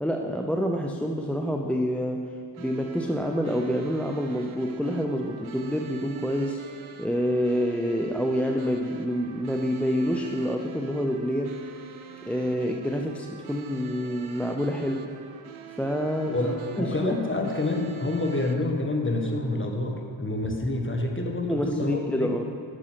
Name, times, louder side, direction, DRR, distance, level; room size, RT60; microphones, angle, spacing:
voice 1, 0.0-6.6 7.0-11.6 12.3-15.1 15.8-16.4 16.8-17.2 21.5-22.4, equal, 5° left, 2 dB, 0.5 m, -27 dB
sound 1, 2.5-18.5, right 7 dB, 80° right, 0.8 m, -45 dB
voice 2, 16.2-22.3, left 2 dB, 25° left, 2 dB, 1.4 m, -28 dB
9.5 x 6.4 x 5.8 m, 2.5 s
cardioid pair, 65°, 48 cm